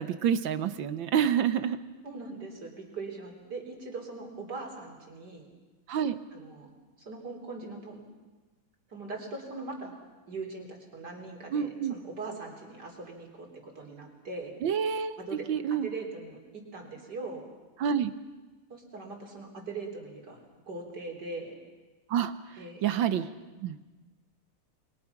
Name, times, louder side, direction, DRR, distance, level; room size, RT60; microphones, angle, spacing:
voice 1, 0.0-1.8 5.9-6.2 11.5-11.9 14.6-15.2 15.5-15.9 17.8-18.1 22.1-22.3 22.8-23.3 23.6-23.8, right 8 dB, 65° right, 12 dB, 1.6 m, -27 dB
voice 2, 2.0-5.5 6.3-6.7 7.0-8.0 8.9-9.9 10.3-14.5 15.2-17.4 18.7-21.6 22.6-22.9, right 3 dB, 50° right, 2 dB, 4.3 m, -41 dB
29.0 x 22.0 x 5.9 m, 1.3 s
omnidirectional pair, 2.4 m